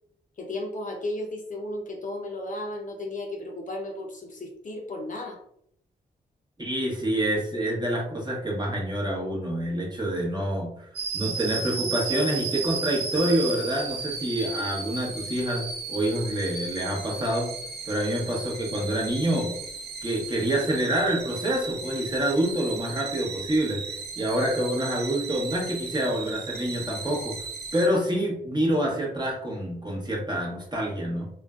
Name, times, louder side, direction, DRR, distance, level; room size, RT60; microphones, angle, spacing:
voice 1, 0.4-5.4, left 1 dB, 45° left, 1 dB, 0.6 m, -34 dB
voice 2, 6.6-10.7 11.1-17.5 17.9-19.5 20.0-23.8 24.2-27.3 27.7-31.3, right 1 dB, 25° right, -2 dB, 0.9 m, -27 dB
sound 1, 11.0-27.9, right 5 dB, 65° right, 0.5 m, -35 dB
2.4 x 2.1 x 2.3 m, 0.70 s
cardioid pair, 60°, 18 cm